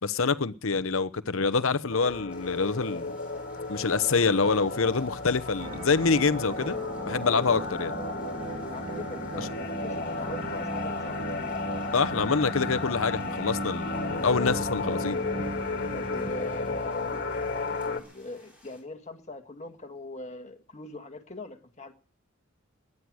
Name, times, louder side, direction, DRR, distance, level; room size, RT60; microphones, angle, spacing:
voice 1, 0.0-3.1 3.7-6.8 7.1-8.0 9.4-9.5 11.9-15.2, left 4 dB, 70° left, 0.9 m, -26 dB
sound 1, 1.9-18.0, left 3 dB, 50° left, 2.2 m, -34 dB
sound 2, 2.3-18.8, left 1 dB, 5° right, 7.6 m, -59 dB
sound 3, 5.6-17.4, right 1 dB, 25° right, 2.1 m, -37 dB
voice 2, 7.2-7.5 8.7-11.2 15.9-17.2 18.1-21.9, left 2 dB, 30° left, 1.9 m, -41 dB
20.0 x 11.0 x 6.3 m
head